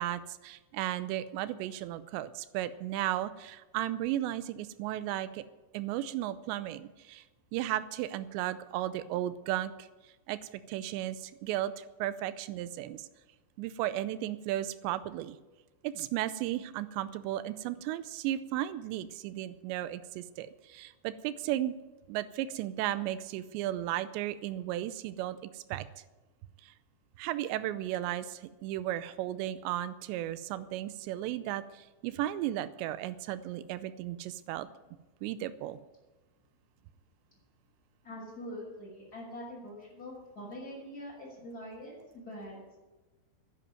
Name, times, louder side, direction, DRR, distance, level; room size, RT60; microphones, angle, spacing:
voice 1, 0.0-5.4 5.7-7.2 7.5-9.9 10.3-10.4 10.7-13.1 13.6-15.4 15.8-21.7 22.1-25.9 26.6-26.7 27.2-34.7 35.2-35.8, right 13 dB, 85° right, 14 dB, 2.6 m, -35 dB
voice 2, 38.0-42.8, equal, 20° left, -3 dB, 6.1 m, -44 dB
10.5 x 10.5 x 9.1 m, 1.1 s
omnidirectional pair, 5.5 m